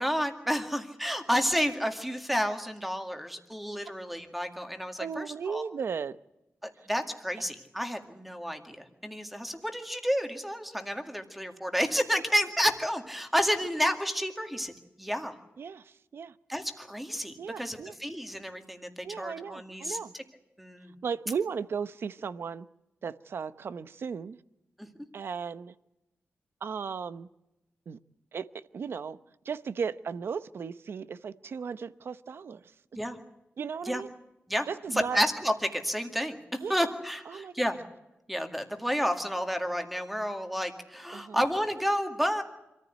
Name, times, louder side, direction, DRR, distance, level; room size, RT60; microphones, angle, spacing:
voice 1, 0.0-5.6 6.6-14.7 15.0-15.4 16.5-20.2 20.6-20.9 24.8-24.9 33.0-33.2 33.9-34.0 34.5-34.7 34.9-37.8 38.3-42.4, equal, ahead, 2.1 m, -30 dB
voice 2, 5.0-6.2 15.6-16.4 17.4-18.0 19.0-20.1 21.0-22.7 23.0-24.4 25.1-25.7 26.6-27.3 27.9-28.0 28.3-29.2 29.4-32.7 33.6-34.1 34.7-35.2 36.6-36.9 37.3-37.7 41.1-41.4, right 6 dB, 60° right, 0.9 m, -36 dB
26.5 x 14.5 x 9.2 m
wide cardioid pair, 180°, 4 cm